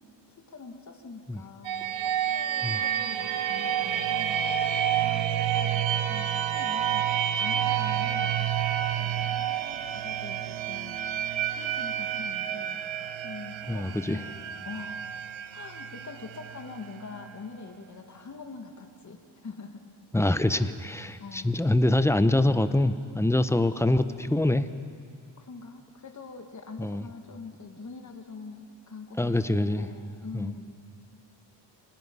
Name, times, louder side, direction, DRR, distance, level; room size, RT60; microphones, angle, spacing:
voice 1, 0.3-4.5 5.0-8.4 9.0-11.0 11.5-12.8 13.2-14.4 14.6-15.1 15.5-19.9 20.5-20.7 21.2-21.7 25.4-30.9, left 4 dB, 40° left, 4 dB, 2.1 m, -44 dB
sound 1, 1.6-17.3, right 10 dB, 90° right, 0.9 m, -29 dB
voice 2, 13.7-14.2 20.1-24.7 26.8-27.0 29.2-29.9 30.3-30.5, left 1 dB, 5° left, 11 dB, 0.7 m, -25 dB
25.5 x 19.5 x 5.5 m, 2.3 s
cardioid pair, 105°, 45 cm